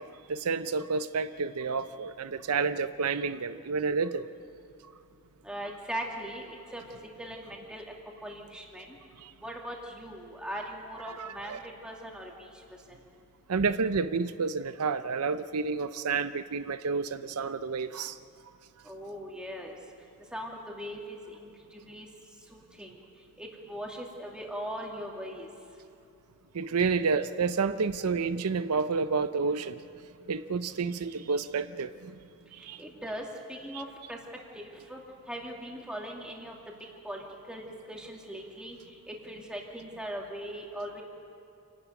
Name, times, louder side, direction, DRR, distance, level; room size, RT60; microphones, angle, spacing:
voice 1, 0.0-4.3 9.2-9.3 11.1-11.6 13.5-18.2 26.5-29.8 30.3-32.1 32.5-32.8 33.7-33.8, right 5 dB, 85° right, 12 dB, 0.6 m, -30 dB
voice 2, 5.4-6.5 6.7-6.8 7.2-7.8 8.2-9.0 9.4-12.5 18.8-19.8 20.3-22.1 22.5-22.9 23.4-25.5 32.8-34.2 34.5-35.0 35.3-36.6 37.0-38.8 39.1-41.0, equal, 5° right, -1 dB, 2.6 m, -40 dB
27.5 x 12.0 x 9.4 m, 2.7 s
head